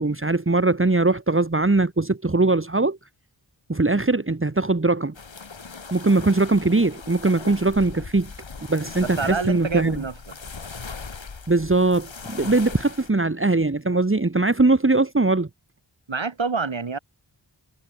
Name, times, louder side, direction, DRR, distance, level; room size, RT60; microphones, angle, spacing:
voice 1, 0.0-3.0 3.7-5.1 5.9-8.3 8.7-10.0 11.5-15.5, right 2 dB, 30° right, 1.9 m, -21 dB
sound 1, 5.1-13.1, left 4 dB, 85° left, 4.2 m, -39 dB
voice 2, 9.0-10.1 16.1-17.0, right 4 dB, 90° right, 7.1 m, -27 dB
wide cardioid pair, 50°, 44 cm